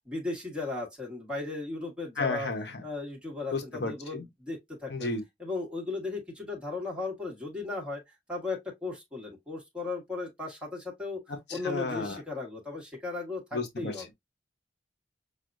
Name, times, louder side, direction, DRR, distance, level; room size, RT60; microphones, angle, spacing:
voice 1, 0.1-2.5 2.8-5.1 5.4-8.0 8.3-11.2 11.5-14.0, left 3 dB, 5° right, 1.3 m, -36 dB
voice 2, 2.2-2.8 3.5-4.2 4.9-5.2 11.5-12.2 13.5-14.1, left 3 dB, 65° left, 1.0 m, -33 dB
6.3 x 2.1 x 2.5 m
head